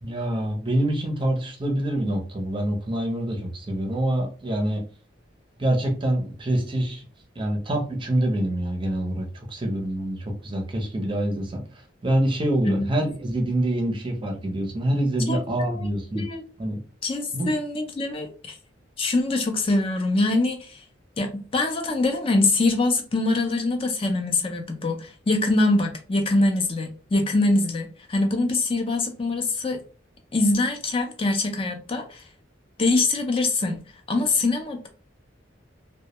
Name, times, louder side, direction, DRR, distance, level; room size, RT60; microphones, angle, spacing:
voice 1, 0.0-4.8 5.6-7.0 7.4-11.6 12.0-16.2 16.6-16.8 17.3-17.5, right 1 dB, 25° right, 0.5 m, -26 dB
voice 2, 15.3-15.9 16.1-16.4 17.0-18.6 19.0-20.8 21.2-29.8 30.3-32.2 32.8-33.8 34.1-34.9, left 2 dB, 30° left, 0.4 m, -24 dB
2.1 x 2.0 x 2.8 m
head